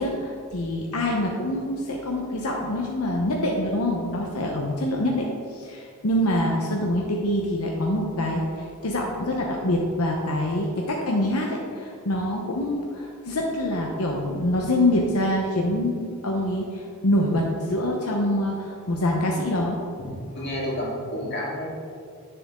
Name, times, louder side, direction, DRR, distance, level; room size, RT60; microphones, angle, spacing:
voice 1, 0.0-19.8, left 1 dB, 85° left, 0 dB, 0.9 m, -25 dB
voice 2, 20.0-21.7, equal, 50° left, -4 dB, 1.9 m, -30 dB
9.5 x 6.9 x 3.7 m, 2.2 s
head